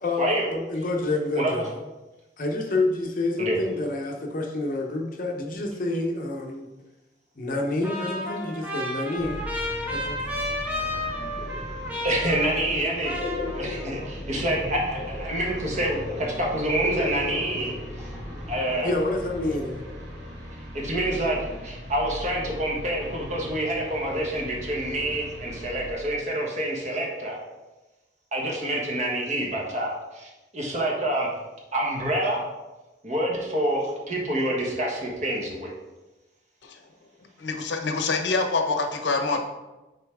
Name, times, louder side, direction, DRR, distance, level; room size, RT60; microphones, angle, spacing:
voice 1, 0.0-1.7 2.4-6.7 7.4-9.5 9.9-10.2 18.8-19.8, left 2 dB, 50° left, 2 dB, 0.8 m, -28 dB
voice 2, 1.3-1.7 3.4-3.6 11.9-13.1 13.5-18.1 18.5-18.9 20.7-27.4 28.3-31.3 31.7-32.4 33.0-35.7, right 1 dB, 40° right, -2 dB, 1.4 m, -27 dB
Trumpet, 7.8-12.8 13.0-14.1, left 1 dB, 10° right, 1.1 m, -32 dB
sound 1, 9.2-25.9, equal, 70° right, 1.6 m, -39 dB
sound 2, 9.9-20.5, left 2 dB, 10° left, 2.2 m, -38 dB
voice 3, 37.4-39.4, left 3 dB, 80° left, 5 dB, 0.7 m, -25 dB
6.8 x 4.2 x 3.5 m, 1.1 s
head